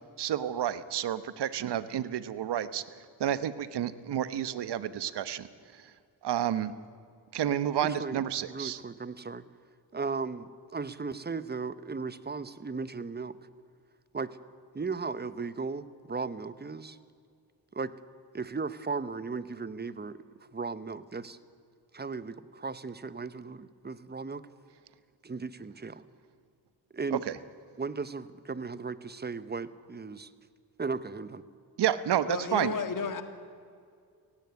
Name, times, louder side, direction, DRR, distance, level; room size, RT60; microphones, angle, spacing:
voice 1, 0.2-5.5 5.7-5.9 6.2-6.7 7.3-8.8 27.1-27.4 31.8-32.7, right 10 dB, 65° right, 14 dB, 1.1 m, -30 dB
voice 2, 7.8-9.5 9.9-13.4 14.1-14.4 14.7-17.0 17.7-17.9 18.3-20.2 20.5-21.4 21.9-24.4 25.2-26.0 26.9-27.2 27.8-30.3 30.8-31.4, right 4 dB, 25° right, 15 dB, 0.9 m, -36 dB
voice 3, 32.3-33.2, left 5 dB, 45° left, 8 dB, 2.0 m, -32 dB
17.5 x 16.0 x 9.4 m, 2.2 s
cardioid pair, 70°, 43 cm